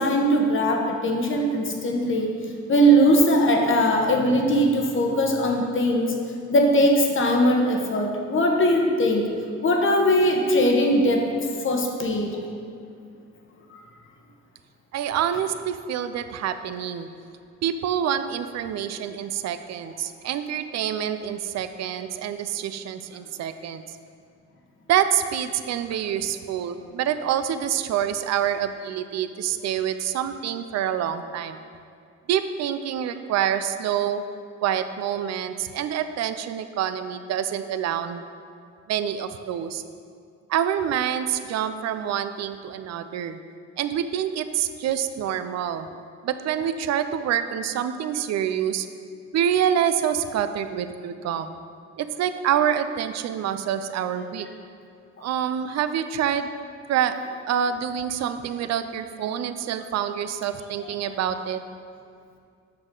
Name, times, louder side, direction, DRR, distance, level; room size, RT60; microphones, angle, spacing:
voice 1, 0.0-2.3 2.7-6.1 6.5-9.2 9.6-11.3 11.6-12.3 13.7-13.8, equal, 40° left, 2 dB, 1.1 m, -20 dB
voice 2, 14.9-17.1 17.6-24.0 24.9-31.6 32.3-34.2 34.6-38.2 38.9-39.8 40.5-43.4 43.8-45.9 46.2-48.9 49.3-51.6 52.0-54.5 55.2-56.5 56.9-57.1 57.5-61.6, right 9 dB, 60° right, 10 dB, 0.5 m, -26 dB
7.6 x 6.1 x 3.8 m, 2.3 s
cardioid pair, 90°, 30 cm